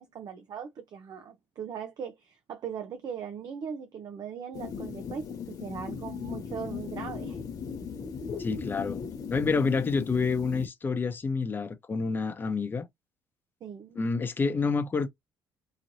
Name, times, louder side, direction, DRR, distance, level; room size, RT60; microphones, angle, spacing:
voice 1, 0.0-7.4 13.6-14.0, right 7 dB, 50° right, 0.7 m, -39 dB
sound 1, 4.5-10.7, left 6 dB, 45° left, 1.1 m, -37 dB
voice 2, 8.4-9.0 9.3-12.8 14.0-15.1, left 4 dB, 25° left, 0.7 m, -28 dB
3.9 x 3.1 x 2.7 m
cardioid pair, 125°, 9 cm